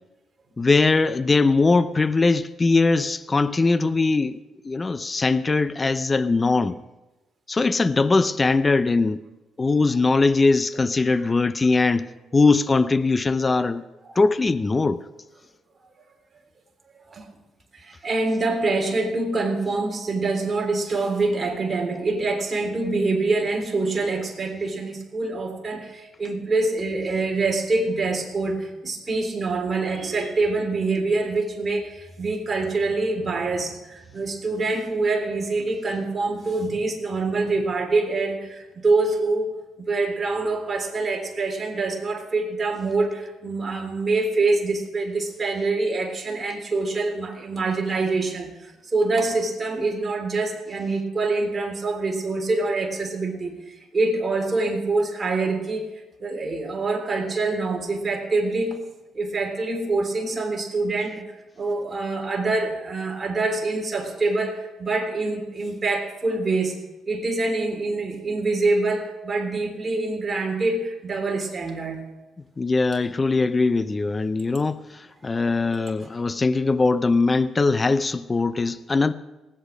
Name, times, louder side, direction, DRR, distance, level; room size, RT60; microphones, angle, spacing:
voice 1, 0.6-6.8 7.5-9.2 9.6-12.1 12.3-13.8 14.2-15.0 72.6-79.1, left 3 dB, 25° left, 0.5 m, -21 dB
voice 2, 16.9-17.3 17.7-55.8 56.2-58.8 59.1-61.3 61.6-66.8 67.1-72.0, right 3 dB, 30° right, 3.5 m, -25 dB
18.5 x 8.6 x 6.1 m
cardioid pair, 90°, 0 cm